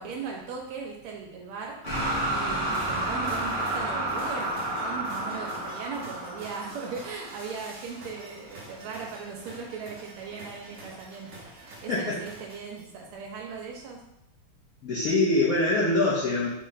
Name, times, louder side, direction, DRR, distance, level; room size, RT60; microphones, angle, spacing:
voice 1, 0.0-14.0, right 5 dB, 80° right, 0 dB, 1.5 m, -38 dB
sound 1, 1.8-7.9, right 1 dB, 35° left, 0.8 m, -31 dB
sound 2, 2.7-13.1, right 2 dB, 65° right, 0.8 m, -47 dB
voice 2, 14.8-16.5, left 2 dB, 75° left, -8 dB, 0.8 m, -24 dB
3.8 x 2.1 x 3.8 m, 0.85 s
omnidirectional pair, 2.4 m